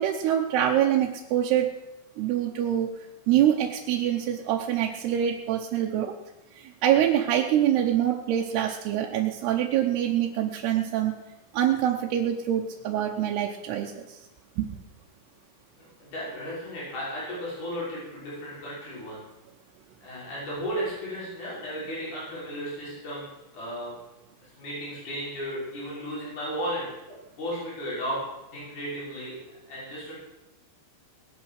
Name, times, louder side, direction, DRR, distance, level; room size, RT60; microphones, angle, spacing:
voice 1, 0.0-1.7 2.2-2.9 3.3-6.1 6.5-11.1 11.5-14.2 14.6-14.7, right 11 dB, 80° right, 0 dB, 2.9 m, -25 dB
voice 2, 15.8-19.2 20.0-23.9 24.6-26.8 27.4-28.2 28.5-29.4 29.7-30.1, equal, 50° left, -7 dB, 7.1 m, -34 dB
19.5 x 9.0 x 6.5 m, 0.95 s
omnidirectional pair, 4.6 m